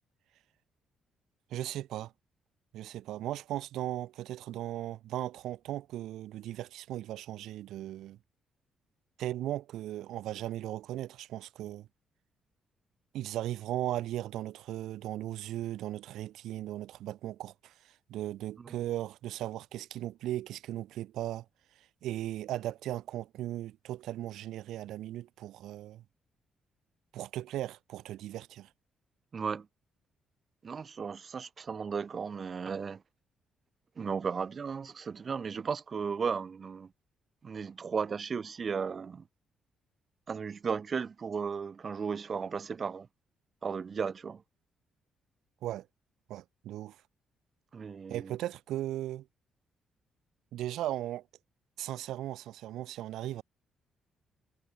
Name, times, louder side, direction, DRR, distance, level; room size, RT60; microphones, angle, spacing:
voice 1, 1.5-2.1 2.7-8.2 9.2-11.9 13.1-21.4 22.0-26.0 27.1-28.7 45.6-45.9 46.3-47.0 48.1-49.3 50.5-51.2 51.8-53.4, right 13 dB, 85° right, 3.2 m, -37 dB
voice 2, 29.3-29.7 30.6-33.0 34.0-36.9 37.4-39.2 40.3-43.1 43.6-44.4 47.7-48.4, right 6 dB, 40° right, 7.2 m, -35 dB
cardioid pair, 90°, 0 cm